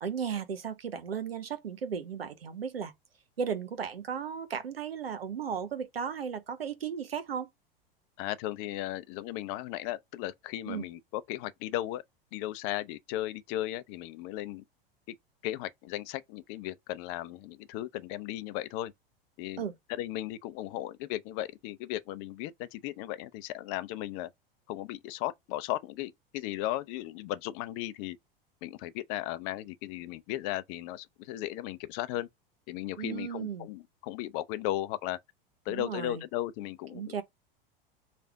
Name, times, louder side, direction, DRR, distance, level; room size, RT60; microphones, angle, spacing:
voice 1, 0.0-2.9 3.4-7.5 10.7-10.8 19.6-19.7 33.0-33.7 35.7-36.2 36.9-37.2, right 7 dB, 85° right, 0.8 m, -35 dB
voice 2, 8.2-12.0 12.3-14.6 15.4-18.9 19.4-19.6 19.9-24.3 24.7-28.2 28.6-32.3 32.7-35.2 35.7-37.2, left 14 dB, 45° left, 0.5 m, -36 dB
3.4 x 2.4 x 4.5 m
figure-of-eight pair, 85°, 29 cm